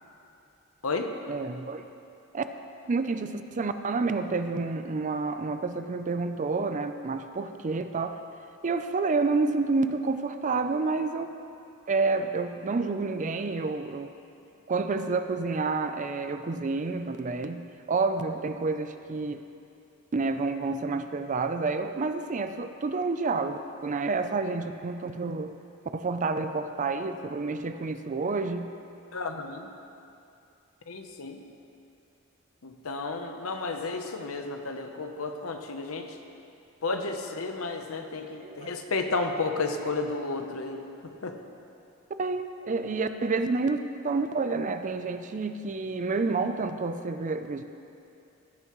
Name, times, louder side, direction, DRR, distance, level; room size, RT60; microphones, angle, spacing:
voice 1, 1.3-1.8 2.3-2.4 2.9-8.2 8.6-11.3 11.9-14.1 14.7-19.4 20.1-25.5 25.9-28.7 38.0-38.1 38.4-38.7 42.2-43.8 44.0-47.6, right 3 dB, 35° right, 8 dB, 0.4 m, -29 dB
voice 2, 29.1-29.7 30.9-31.4 32.6-36.1 36.8-40.8 41.2-41.3, left 3 dB, 75° left, 5 dB, 0.8 m, -32 dB
16.0 x 9.4 x 3.1 m, 2.7 s
head